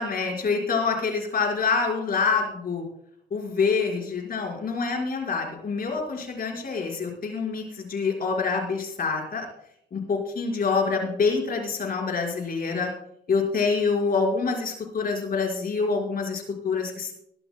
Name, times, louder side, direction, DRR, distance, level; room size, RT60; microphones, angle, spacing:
voice 1, 0.0-2.8 3.3-9.5 9.9-12.9 13.3-17.1, left 4 dB, 45° left, 0 dB, 5.4 m, -26 dB
23.5 x 12.5 x 2.3 m, 0.75 s
cardioid pair, 90°, 20 cm